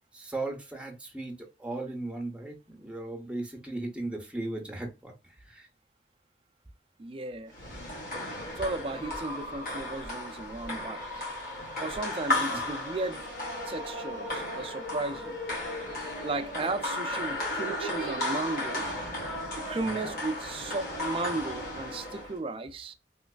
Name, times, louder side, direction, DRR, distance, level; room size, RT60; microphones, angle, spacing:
voice 1, 0.1-5.7 12.4-12.6 19.8-20.2, right 2 dB, 5° right, 0.7 m, -37 dB
voice 2, 7.0-7.5 8.6-11.2 11.8-13.2 13.7-15.4 16.2-18.9 19.7-22.9, right 2 dB, 30° right, 0.3 m, -35 dB
sound 1, 7.5-22.4, left 1 dB, 50° left, 1.6 m, -34 dB
3.2 x 3.0 x 2.3 m
head